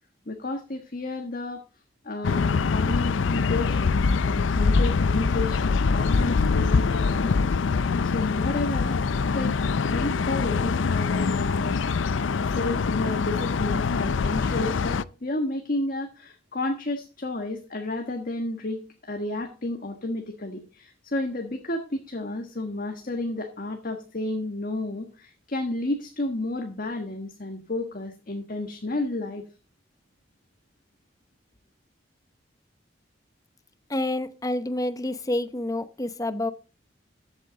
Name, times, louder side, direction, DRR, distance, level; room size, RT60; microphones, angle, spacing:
voice 1, 0.3-1.6 2.0-7.5 8.0-9.0 9.3-9.6 9.8-11.8 12.4-29.5, left 2 dB, 50° left, 1.5 m, -31 dB
sound 1, 2.2-15.0, left 4 dB, 90° left, 0.5 m, -24 dB
voice 2, 33.9-36.5, left 1 dB, 20° left, 0.8 m, -28 dB
14.0 x 8.3 x 3.9 m
head